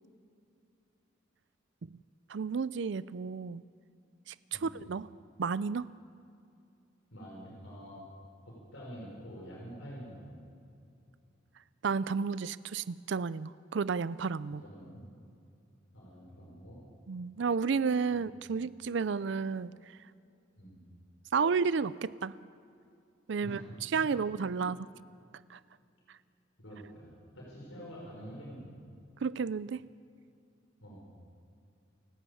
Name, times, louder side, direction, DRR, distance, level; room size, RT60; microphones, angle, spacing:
voice 1, 2.3-3.6 4.3-5.1 5.4-5.8 11.8-14.6 17.1-19.7 21.3-22.3 23.3-24.8 25.5-25.6 29.2-29.8, right 5 dB, 65° right, 17 dB, 0.4 m, -32 dB
voice 2, 7.1-8.0 8.4-10.4 14.6-15.0 15.9-16.8 18.1-18.2 18.5-18.6 20.6-20.8 23.4-23.6 23.9-24.2 26.6-28.8 30.8-31.1, equal, 90° left, -3 dB, 5.8 m, -47 dB
29.0 x 12.5 x 8.5 m, 2.5 s
head